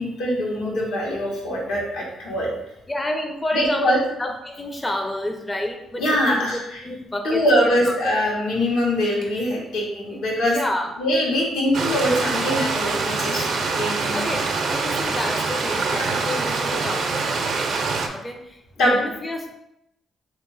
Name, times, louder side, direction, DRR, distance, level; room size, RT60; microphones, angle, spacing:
voice 1, 0.0-2.5 3.5-4.0 6.0-6.8 7.2-10.6 11.0-14.2 15.9-16.1 18.8-19.0, equal, 85° left, -3 dB, 1.4 m, -23 dB
voice 2, 2.9-7.9 10.1-10.2 10.5-11.0 14.1-17.4 18.1-19.5, left 1 dB, 15° left, 3 dB, 0.5 m, -30 dB
Stream, 11.7-18.1, right 4 dB, 60° right, 0.5 m, -24 dB
3.4 x 2.8 x 3.9 m, 0.86 s
cardioid pair, 90°, 0 cm